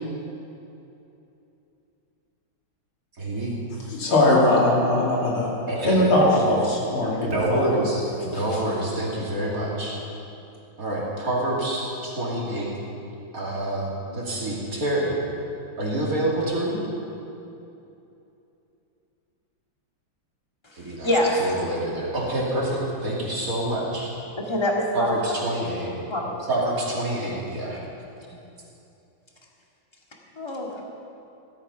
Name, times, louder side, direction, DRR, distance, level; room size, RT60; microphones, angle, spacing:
voice 1, 3.2-3.6 5.7-6.0 6.4-6.5 7.2-10.0 10.8-12.7 13.3-15.1 15.8-16.8 20.7-21.1 21.4-24.1 24.9-25.9 26.5-27.8, right 1 dB, 45° right, -5 dB, 3.2 m, -27 dB
voice 2, 3.9-5.5 5.8-7.8, left 1 dB, 85° left, -4 dB, 3.7 m, -20 dB
voice 3, 21.0-21.7 24.4-25.2 26.1-26.5 30.4-30.8, left 1 dB, 15° left, -2 dB, 2.0 m, -25 dB
16.5 x 12.5 x 5.6 m, 2.8 s
omnidirectional pair, 2.2 m